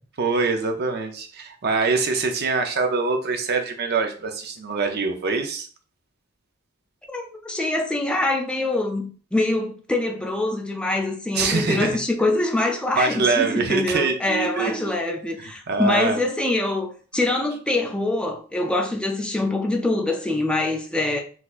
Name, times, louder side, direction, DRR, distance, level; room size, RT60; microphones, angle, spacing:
voice 1, 0.2-5.7 11.3-12.0 13.0-14.9 15.4-16.2, right 4 dB, 45° right, 0.5 m, -24 dB
voice 2, 7.1-21.2, left 2 dB, 5° left, 0.4 m, -24 dB
4.0 x 2.7 x 2.4 m
head